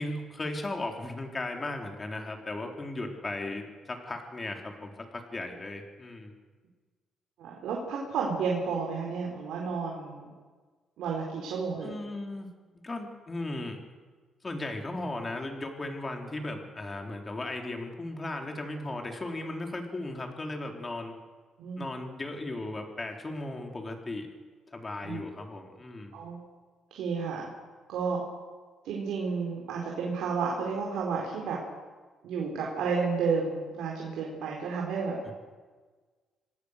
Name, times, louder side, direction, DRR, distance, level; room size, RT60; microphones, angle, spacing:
voice 1, 0.0-6.3 11.8-12.5 12.8-13.8 14.4-21.1 21.8-24.3 24.7-26.2 35.2-35.3, left 2 dB, 25° left, 3 dB, 4.1 m, -36 dB
voice 2, 7.4-10.3 11.0-11.9 21.6-21.8 25.0-25.2 26.1-26.4 26.9-27.5 27.9-28.2 28.8-31.6 32.2-35.3, right 5 dB, 85° right, -1 dB, 4.5 m, -31 dB
26.5 x 18.5 x 6.8 m, 1.4 s
cardioid pair, 90°, 0 cm